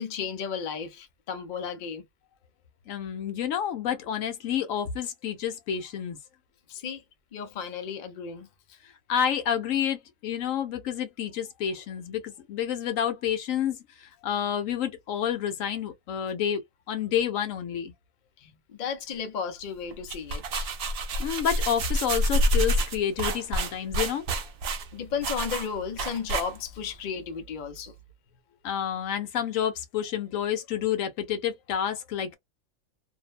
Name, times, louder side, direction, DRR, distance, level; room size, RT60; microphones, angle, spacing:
voice 1, 0.0-2.1 6.7-7.0 7.3-8.5 11.7-11.8 18.4-20.7 24.9-27.9, left 6 dB, 55° left, 0.5 m, -34 dB
voice 2, 2.9-6.2 9.1-16.6 16.9-17.9 21.2-24.2 28.6-32.4, left 9 dB, 80° left, 1.0 m, -29 dB
sound 1, 19.9-26.9, right 1 dB, 60° right, 0.7 m, -28 dB
2.6 x 2.1 x 2.3 m
omnidirectional pair, 1.4 m